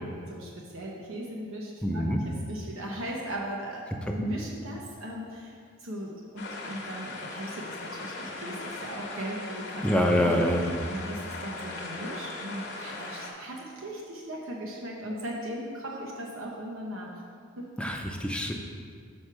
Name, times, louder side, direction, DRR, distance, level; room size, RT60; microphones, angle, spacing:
voice 1, 0.3-3.8 4.1-9.8 10.2-10.4 10.9-17.2 17.6-17.7, right 1 dB, 80° right, -2 dB, 0.9 m, -38 dB
voice 2, 1.8-2.2 4.1-4.2 9.8-10.7 17.8-18.5, equal, 5° left, 2 dB, 0.5 m, -25 dB
sound 1, 6.4-13.3, left 2 dB, 55° left, 0.9 m, -39 dB
6.4 x 4.6 x 6.0 m, 2.1 s
head